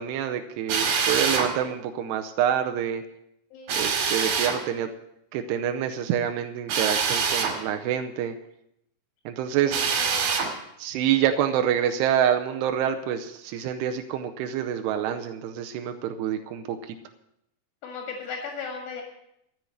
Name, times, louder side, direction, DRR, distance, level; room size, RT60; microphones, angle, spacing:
voice 1, 0.0-3.0 3.7-4.9 5.3-8.4 9.3-9.8 10.8-16.8, right 9 dB, 90° right, 6 dB, 2.4 m, -27 dB
Drill, 0.7-1.5 3.7-4.6 6.7-7.6 9.7-10.5, right 6 dB, 60° right, 3.4 m, -25 dB
voice 2, 3.5-3.9 9.7-10.4 17.8-19.0, left 5 dB, 80° left, 2 dB, 4.5 m, -37 dB
13.5 x 7.8 x 7.9 m, 0.80 s
omnidirectional pair, 5.5 m